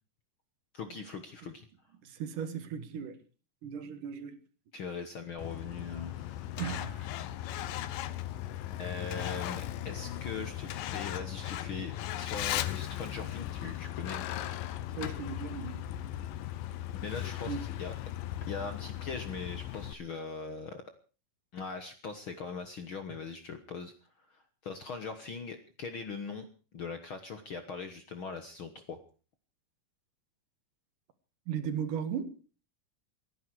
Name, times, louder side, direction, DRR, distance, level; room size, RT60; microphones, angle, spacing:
voice 1, 0.7-1.7 4.7-6.5 8.8-11.9 12.2-14.2 16.9-17.9 18.5-20.8 21.5-26.5 26.7-29.0, left 4 dB, 55° left, 1.6 m, -41 dB
voice 2, 2.0-3.2 3.6-4.4 6.6-7.1 15.0-15.8 17.5-17.7 31.5-32.3, right 7 dB, 70° right, 3.1 m, -36 dB
Truck, 5.4-19.9, left 13 dB, 90° left, 2.6 m, -37 dB
29.0 x 10.5 x 4.7 m
omnidirectional pair, 3.8 m